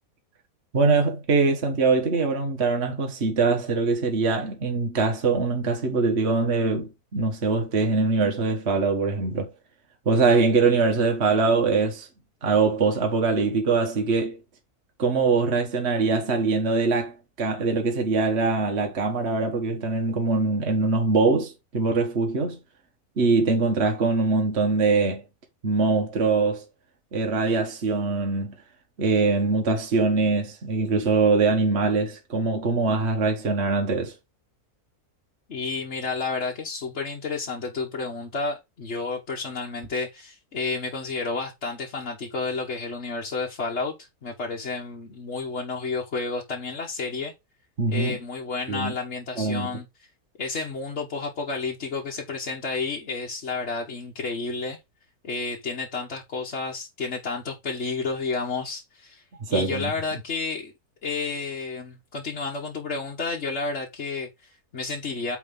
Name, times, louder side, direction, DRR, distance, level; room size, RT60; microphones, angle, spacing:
voice 1, 0.7-9.5 10.0-12.1 12.4-14.4 15.0-22.6 23.2-25.2 25.6-26.6 27.1-28.5 29.0-34.1 47.8-48.2 48.7-48.9 49.4-49.7 59.4-59.9, right 4 dB, 45° right, 1.6 m, -23 dB
voice 2, 35.5-43.9 44.2-47.3 47.9-50.1 50.4-54.8 55.2-59.2 59.5-60.7 61.0-65.4, left 4 dB, 50° left, 1.5 m, -31 dB
9.1 x 3.6 x 3.7 m
omnidirectional pair, 1.6 m